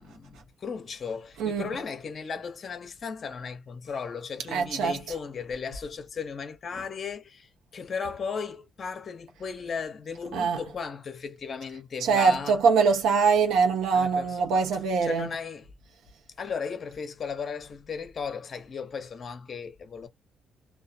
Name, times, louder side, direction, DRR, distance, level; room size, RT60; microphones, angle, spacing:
voice 1, 0.0-12.6 13.9-14.4 15.0-15.7 16.4-20.1, left 5 dB, 45° left, 0.7 m, -36 dB
voice 2, 4.5-5.0 10.3-10.6 12.0-15.3, right 5 dB, 90° right, 0.7 m, -23 dB
2.4 x 2.2 x 2.5 m
cardioid pair, 90°, 0 cm